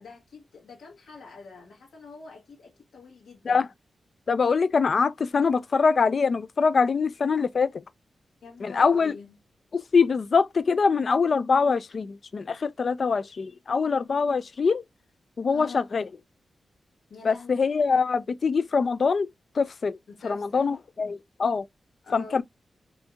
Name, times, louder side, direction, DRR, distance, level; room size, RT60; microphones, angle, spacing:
voice 1, 0.0-3.7 8.4-9.4 15.5-15.9 17.1-17.6 20.1-20.7 22.0-22.4, left 4 dB, 80° left, 1.2 m, -45 dB
voice 2, 4.3-7.7 8.6-9.1 9.7-14.8 15.4-16.0 17.2-19.3 19.6-20.0 20.2-21.7 22.1-22.4, left 5 dB, 50° left, 0.3 m, -23 dB
4.2 x 2.7 x 2.3 m
wide cardioid pair, 115°, 0 cm